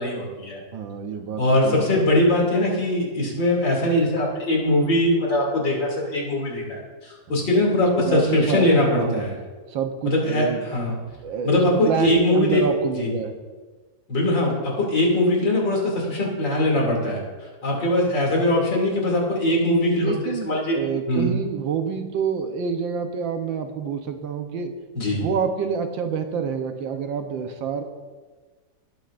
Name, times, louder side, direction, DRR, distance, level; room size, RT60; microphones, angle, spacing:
voice 1, 0.0-0.6 1.4-9.4 10.0-11.0 11.4-12.6 13.0-13.1 14.1-17.2 17.6-20.8 21.1-21.3 24.9-25.3, left 1 dB, 70° left, -1 dB, 3.4 m, -21 dB
voice 2, 0.7-2.2 7.3-7.5 8.1-9.2 9.7-10.6 11.2-13.3 20.0-24.7 25.1-27.8, right 6 dB, 80° right, 6 dB, 1.6 m, -27 dB
19.5 x 9.0 x 2.5 m, 1.4 s
omnidirectional pair, 2.0 m